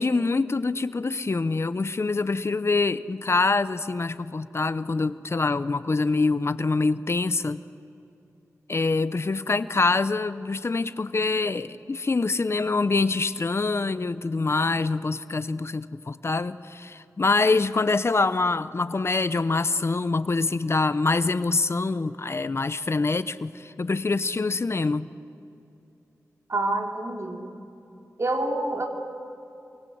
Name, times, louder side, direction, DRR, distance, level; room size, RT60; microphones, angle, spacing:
voice 1, 0.0-7.6 8.7-25.1, left 3 dB, 45° left, 14 dB, 0.7 m, -25 dB
voice 2, 26.5-27.5 28.2-28.9, right 2 dB, 55° right, 3 dB, 3.1 m, -27 dB
27.0 x 24.0 x 7.9 m, 2.7 s
cardioid pair, 50°, 6 cm